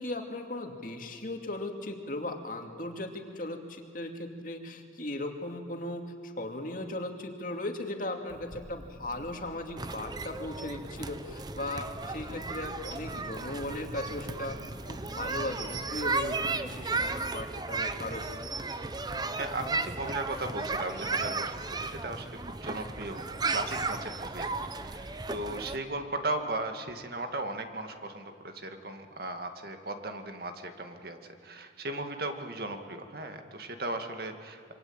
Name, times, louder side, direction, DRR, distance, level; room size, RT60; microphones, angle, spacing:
voice 1, 0.0-14.6 14.9-18.3, left 1 dB, 45° left, 4 dB, 2.6 m, -37 dB
Wind / Fire, 8.3-16.9, equal, 90° right, 7.7 m, -49 dB
sound 1, 9.8-25.8, right 3 dB, 20° right, 0.8 m, -35 dB
voice 2, 19.4-24.5 24.8-34.7, right 2 dB, 55° right, 6 dB, 2.1 m, -37 dB
26.5 x 25.0 x 8.9 m, 2.2 s
head